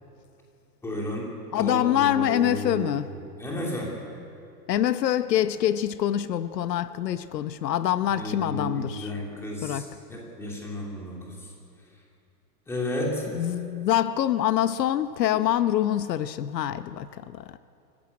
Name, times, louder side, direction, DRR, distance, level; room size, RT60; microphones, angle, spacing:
voice 1, 0.8-1.3 1.5-3.9 8.1-11.5 12.7-13.2, left 1 dB, 5° left, -2 dB, 2.8 m, -33 dB
voice 2, 1.5-3.1 4.7-9.1 9.6-9.8 13.3-17.6, left 11 dB, 75° left, 12 dB, 0.9 m, -25 dB
25.0 x 15.0 x 9.6 m, 2.6 s
hypercardioid pair, 170°, 50 cm